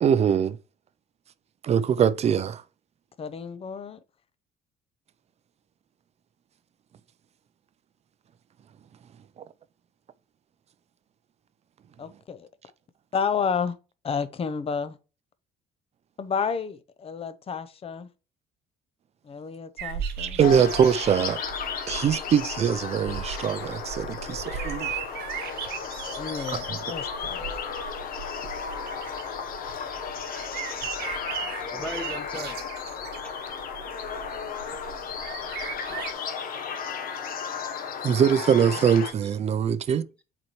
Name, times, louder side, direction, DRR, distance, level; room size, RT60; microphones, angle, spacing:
voice 1, 0.0-0.6 1.6-2.6 20.2-21.4 21.9-25.0 26.7-26.8 29.1-29.2 38.0-40.0, right 8 dB, 40° right, 0.4 m, -23 dB
voice 2, 3.2-4.0 12.0-12.5 13.1-13.8 14.0-15.0 16.2-18.1 19.2-20.4 26.2-27.6, left 6 dB, 35° left, 0.7 m, -31 dB
sound 1, 19.8-36.1, right 8 dB, 75° right, 0.7 m, -38 dB
sound 2, 20.4-39.1, left 6 dB, 60° left, 1.0 m, -34 dB
voice 3, 31.6-32.6 33.2-33.3 36.7-36.8 39.2-39.4, left 1 dB, 5° left, 1.2 m, -39 dB
7.6 x 4.2 x 3.0 m
cardioid pair, 110°, 17 cm